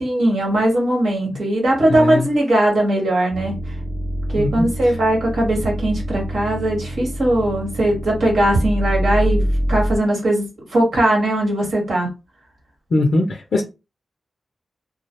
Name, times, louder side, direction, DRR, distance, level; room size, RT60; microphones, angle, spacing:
voice 1, 0.0-3.5 4.3-12.1, right 1 dB, 80° right, 1.2 m, -19 dB
voice 2, 1.9-2.3 4.4-4.9 12.9-13.6, left 2 dB, 75° left, 0.4 m, -21 dB
sound 1, 3.3-10.0, equal, 20° right, 0.5 m, -25 dB
2.3 x 2.0 x 2.7 m
supercardioid pair, 40°, 0 cm